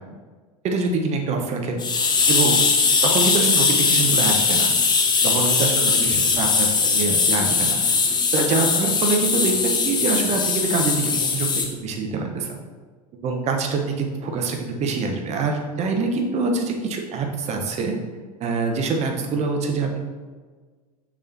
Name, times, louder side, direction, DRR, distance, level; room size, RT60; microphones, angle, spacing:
voice 1, 0.6-1.8 2.3-2.6 3.0-4.7 5.2-8.0 8.3-12.6 13.2-17.9 18.4-20.0, right 4 dB, 35° right, 3 dB, 1.0 m, -25 dB
sound 1, 1.8-11.7, left 4 dB, 20° left, 0.8 m, -20 dB
6.7 x 5.2 x 2.8 m, 1.4 s
figure-of-eight pair, 80°, 20 cm